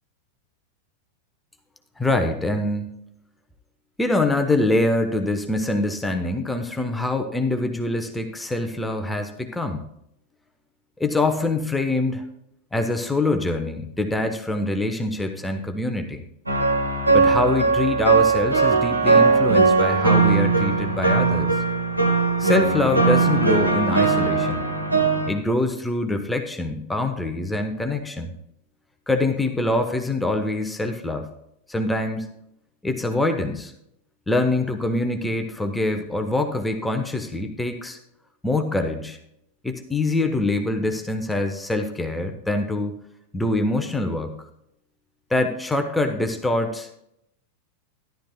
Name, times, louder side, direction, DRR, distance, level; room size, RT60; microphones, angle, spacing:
voice 1, 2.0-3.0 4.0-9.8 11.0-12.2 12.7-16.2 17.1-21.6 22.4-24.7 25.3-28.3 29.1-31.3 31.7-32.3 32.8-33.7 34.3-38.0 38.4-39.2 39.6-42.9 43.3-44.3 45.3-46.9, left 2 dB, 5° left, 5 dB, 1.0 m, -24 dB
sound 1, 16.5-25.3, right 4 dB, 85° right, 1.5 m, -19 dB
13.5 x 11.5 x 2.2 m, 0.76 s
figure-of-eight pair, 90°, 0 cm